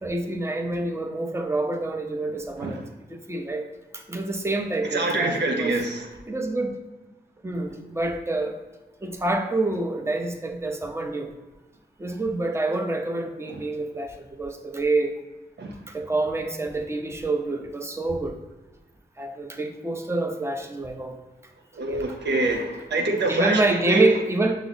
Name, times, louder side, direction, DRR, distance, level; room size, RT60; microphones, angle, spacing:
voice 1, 0.0-2.8 3.1-3.7 3.9-5.7 6.3-6.8 7.4-8.6 9.0-11.3 12.0-15.2 15.9-18.4 19.2-21.2 21.9-22.0 23.3-24.6, right 2 dB, 15° right, 3 dB, 0.6 m, -27 dB
voice 2, 4.9-6.1 13.5-13.6 15.6-15.8 21.7-24.2, right 2 dB, 80° right, 2 dB, 0.6 m, -25 dB
5.7 x 2.0 x 4.0 m, 1.2 s
cardioid pair, 40°, 18 cm